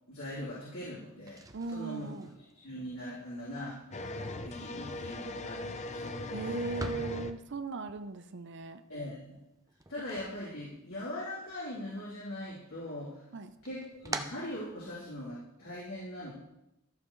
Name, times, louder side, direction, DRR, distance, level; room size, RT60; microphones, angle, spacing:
voice 1, 0.1-1.4 1.7-2.1 2.5-6.4 8.9-9.4 9.9-13.2 13.6-16.3, left 1 dB, 85° left, -9 dB, 3.6 m, -41 dB
sound 1, 1.1-11.1 11.5-12.3 12.7-15.3, right 3 dB, 15° right, 0.6 m, -47 dB
voice 2, 1.5-2.3 6.3-8.8 13.3-13.5, right 3 dB, 60° right, 10 dB, 0.7 m, -38 dB
sound 2, 3.9-7.3, left 2 dB, 35° left, 0.6 m, -39 dB
14.5 x 6.9 x 3.2 m, 0.87 s
head